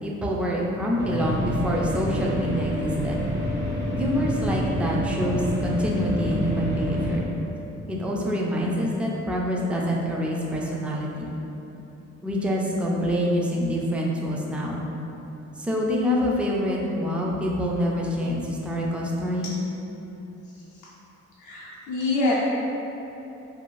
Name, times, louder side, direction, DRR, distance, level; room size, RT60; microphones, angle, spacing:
voice 1, 0.0-3.2 3.9-7.3 7.9-11.3 12.2-14.8 15.6-19.5, equal, 5° right, -3 dB, 0.3 m, -26 dB
sound 1, 1.0-7.2, equal, 40° right, 0.7 m, -27 dB
voice 2, 21.4-22.3, left 2 dB, 80° left, -7 dB, 0.5 m, -25 dB
2.6 x 2.4 x 3.0 m, 3.0 s
cardioid pair, 90°, 30 cm